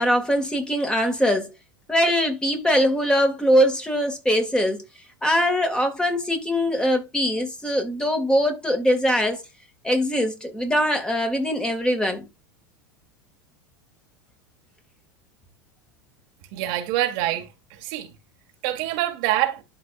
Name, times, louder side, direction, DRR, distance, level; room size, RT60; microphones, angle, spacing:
voice 1, 0.0-1.5 1.9-4.8 5.2-9.4 9.8-12.2, equal, 5° left, 2.1 m, -22 dB
voice 2, 16.5-18.1 18.6-19.6, right 14 dB, 60° right, 1.7 m, -26 dB
12.0 x 4.3 x 2.5 m
hypercardioid pair, 85°, 11 cm